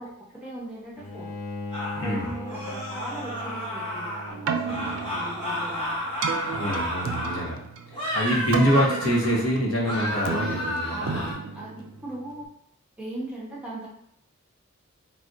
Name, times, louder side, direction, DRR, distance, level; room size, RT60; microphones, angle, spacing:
voice 1, 0.0-1.3 2.0-6.0 6.7-6.8 10.9-11.2 11.5-12.5 13.0-13.9, right 1 dB, 5° right, -6 dB, 0.6 m, -38 dB
Bowed string instrument, 1.0-6.2, left 1 dB, 40° left, 0.5 m, -39 dB
sound 1, 1.7-4.3 4.6-7.5 7.9-9.5 9.8-11.3, equal, 20° left, 0.9 m, -32 dB
Keyboard (musical), 4.3-12.5, right 5 dB, 65° right, 0.3 m, -33 dB
voice 2, 6.5-7.6 7.9-11.2, equal, 80° left, -3 dB, 0.8 m, -25 dB
2.4 x 2.1 x 3.7 m, 0.71 s
head